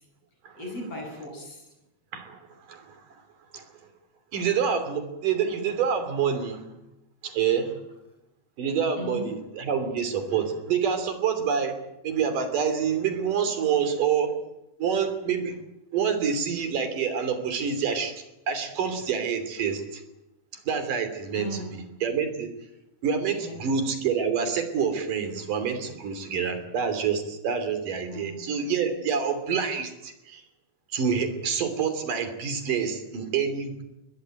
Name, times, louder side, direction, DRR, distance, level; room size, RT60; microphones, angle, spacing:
voice 1, 0.6-1.6 9.0-9.3 21.3-21.8 23.3-23.6 28.1-28.4, left 1 dB, 50° left, 2 dB, 9.1 m, -37 dB
voice 2, 4.3-6.6 7.2-7.7 8.6-11.8 12.0-14.4 14.8-15.6 15.9-18.1 18.5-20.0 20.7-22.5 23.0-30.4 30.9-33.8, right 7 dB, 80° right, 9 dB, 4.6 m, -27 dB
21.5 x 21.0 x 9.3 m, 0.91 s
omnidirectional pair, 3.7 m